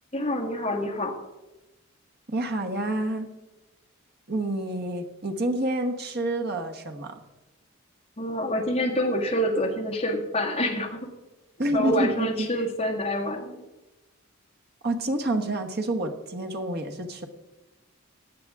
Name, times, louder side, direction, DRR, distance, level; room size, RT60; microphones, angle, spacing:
voice 1, 0.1-1.2 8.2-11.0 11.7-13.6, equal, 30° left, 0 dB, 1.8 m, -27 dB
voice 2, 2.3-3.3 4.3-7.2 11.6-12.5 14.8-17.3, right 1 dB, 50° right, 4 dB, 1.2 m, -28 dB
16.0 x 9.8 x 3.6 m, 1.1 s
head